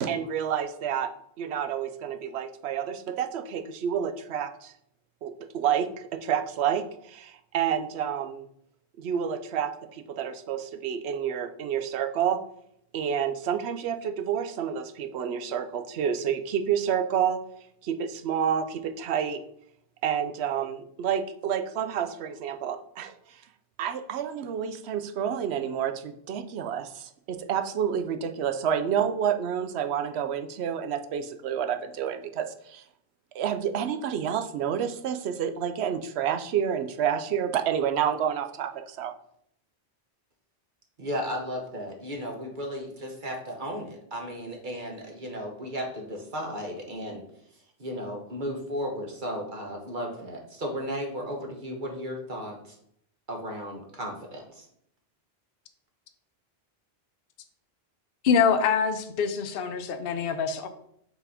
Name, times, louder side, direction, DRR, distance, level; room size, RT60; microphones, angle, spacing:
voice 1, 0.0-4.7 5.2-8.4 9.0-12.4 12.9-17.4 17.8-19.4 20.0-23.4 23.8-32.8 33.3-39.1, right 8 dB, 80° right, 9 dB, 0.9 m, -29 dB
voice 2, 41.0-47.2 47.5-52.8 53.3-54.7, equal, 50° right, 1 dB, 1.2 m, -35 dB
voice 3, 58.2-60.7, left 6 dB, 60° left, 8 dB, 0.8 m, -25 dB
5.4 x 4.1 x 4.8 m, 0.70 s
omnidirectional pair, 1.1 m